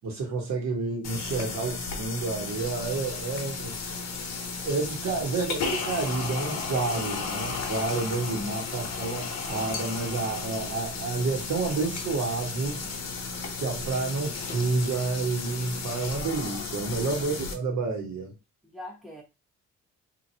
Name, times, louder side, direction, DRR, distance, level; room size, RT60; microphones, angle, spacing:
voice 1, 0.0-3.7 4.6-12.8 13.6-18.3, right 3 dB, 65° right, 1.3 m, -29 dB
sound 1, 1.0-17.5, left 4 dB, 60° left, 0.8 m, -34 dB
voice 2, 16.8-17.2 18.6-19.2, left 1 dB, ahead, 1.0 m, -44 dB
2.9 x 2.5 x 2.7 m
cardioid pair, 90°, 30 cm